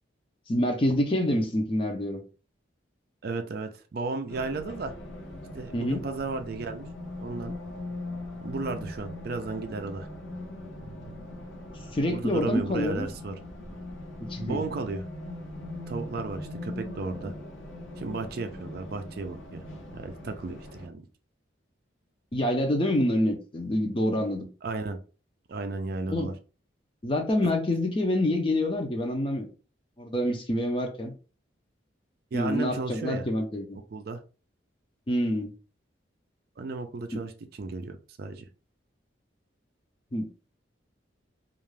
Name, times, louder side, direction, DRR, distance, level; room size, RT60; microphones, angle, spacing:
voice 1, 0.5-2.2 5.7-6.0 11.9-13.1 14.2-14.6 22.3-24.5 26.1-26.3 27.0-29.5 30.0-31.1 32.3-33.8 35.1-35.5 37.1-37.2 40.1-40.3, left 1 dB, 30° left, 0.5 m, -27 dB
voice 2, 3.2-4.9 5.5-6.9 7.2-7.6 8.4-10.1 12.1-13.4 14.4-15.0 15.9-17.3 18.0-19.6 19.9-21.0 24.6-25.0 25.5-26.3 32.3-33.3 33.9-34.2 36.6-37.3 37.6-38.5, right 3 dB, 55° right, 0.4 m, -34 dB
Race car auto racing, 4.3-20.9, left 1 dB, 85° left, 0.7 m, -40 dB
2.4 x 2.3 x 3.1 m
head